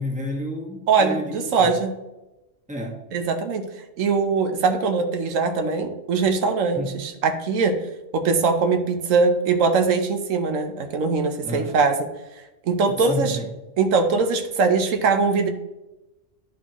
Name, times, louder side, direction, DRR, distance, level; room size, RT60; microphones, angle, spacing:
voice 1, 0.0-1.4 1.6-1.7 2.7-3.0 6.7-7.0 11.4-11.7 12.9-13.5, left 1 dB, 5° right, 0 dB, 1.2 m, -30 dB
voice 2, 0.9-1.9 3.1-3.6 4.0-7.8 8.1-12.0 12.7-13.4 13.8-15.5, right 4 dB, 90° right, 6 dB, 1.2 m, -21 dB
10.5 x 4.4 x 3.0 m, 0.99 s
omnidirectional pair, 1.3 m